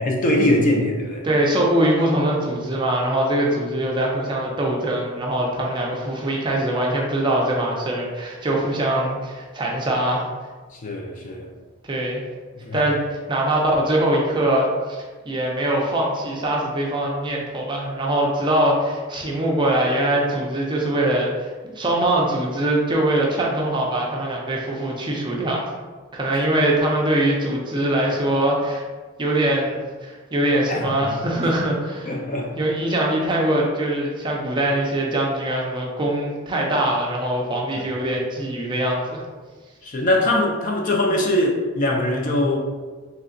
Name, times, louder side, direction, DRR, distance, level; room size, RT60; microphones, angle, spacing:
voice 1, 0.0-1.2 10.7-11.5 12.6-12.8 30.7-31.2 32.0-32.5 37.8-37.9 39.8-42.6, left 1 dB, 40° left, 0 dB, 0.4 m, -22 dB
voice 2, 1.2-10.3 11.9-12.2 12.7-21.5 21.7-25.7 26.1-28.8 29.2-32.1 32.6-39.2, right 1 dB, 20° right, -2 dB, 0.4 m, -22 dB
3.2 x 2.7 x 2.5 m, 1.4 s
head